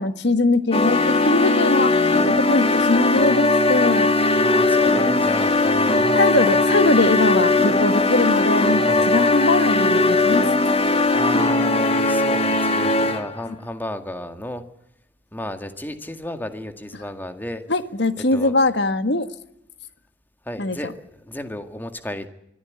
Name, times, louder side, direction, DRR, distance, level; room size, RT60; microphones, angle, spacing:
voice 1, 0.0-1.9 2.2-4.1 6.1-10.5 17.7-19.3 20.6-20.9, left 2 dB, 70° left, 10 dB, 1.6 m, -21 dB
sound 1, 0.7-13.4, left 2 dB, 35° left, 2.1 m, -19 dB
voice 2, 4.3-6.6 8.7-9.1 10.6-14.6 15.3-17.6 18.3-18.5 20.5-22.3, left 1 dB, 10° left, 7 dB, 2.0 m, -33 dB
25.0 x 14.5 x 9.7 m, 0.81 s
head